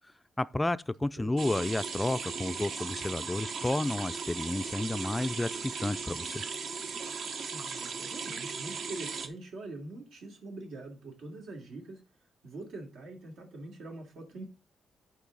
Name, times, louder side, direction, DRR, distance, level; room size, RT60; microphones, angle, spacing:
voice 1, 0.4-6.4, left 2 dB, 10° left, 0.3 m, -31 dB
voice 2, 1.2-1.5 7.5-12.0 12.4-14.4, right 2 dB, 80° right, 2.9 m, -44 dB
sound 1, 1.4-9.3, right 5 dB, 60° right, 1.0 m, -37 dB
10.0 x 4.6 x 3.9 m
cardioid pair, 115°, 0 cm